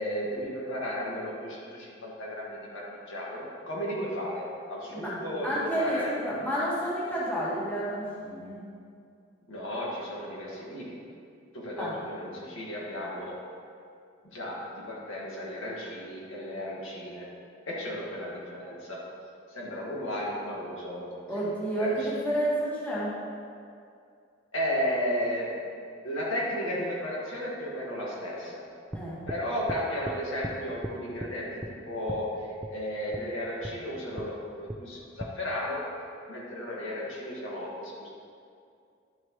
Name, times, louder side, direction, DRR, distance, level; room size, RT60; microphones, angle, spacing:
voice 1, 0.0-6.2 9.5-11.0 11.5-13.4 14.2-17.3 17.7-19.0 19.5-21.1 21.8-22.1 24.5-25.6 26.0-28.7 29.3-35.9 36.3-38.1, equal, 85° left, -5 dB, 1.9 m, -34 dB
voice 2, 5.4-8.6 11.8-11.9 21.3-23.1 28.9-29.2, right 1 dB, 10° left, -8 dB, 1.8 m, -30 dB
sound 1, 28.9-29.4 29.7-30.2 30.4-30.6 30.8-31.3 31.6-31.8 32.1-32.2 32.6-32.8 33.1-33.2 33.6-33.7 34.2-34.3 34.7-34.8 35.2-35.3, right 1 dB, 10° right, 0.3 m, -37 dB
11.0 x 7.4 x 3.2 m, 2.4 s
head